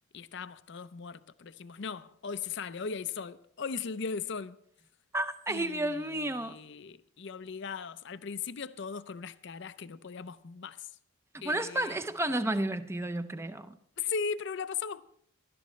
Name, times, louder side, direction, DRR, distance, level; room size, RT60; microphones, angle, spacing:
voice 1, 0.1-4.6 5.5-10.9 11.4-12.0 14.0-15.0, left 5 dB, 55° left, 0.5 m, -38 dB
voice 2, 5.1-6.6 11.3-13.8, right 1 dB, 10° right, 0.5 m, -32 dB
19.0 x 12.0 x 3.2 m
head